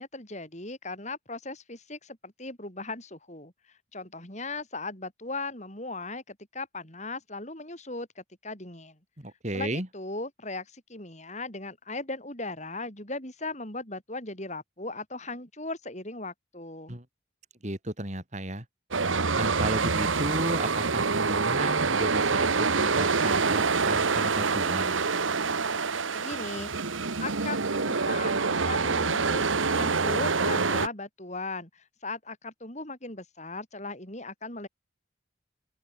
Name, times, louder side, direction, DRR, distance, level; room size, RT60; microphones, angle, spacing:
voice 1, 0.0-9.0 9.5-17.0 26.1-34.7, left 2 dB, 35° left, 7.7 m, -38 dB
voice 2, 9.2-9.9 16.9-17.0 17.6-18.6 19.3-22.5 22.8-25.0, right 1 dB, 35° right, 3.8 m, -33 dB
sound 1, 18.9-30.9, right 4 dB, 85° right, 1.4 m, -26 dB
open air
head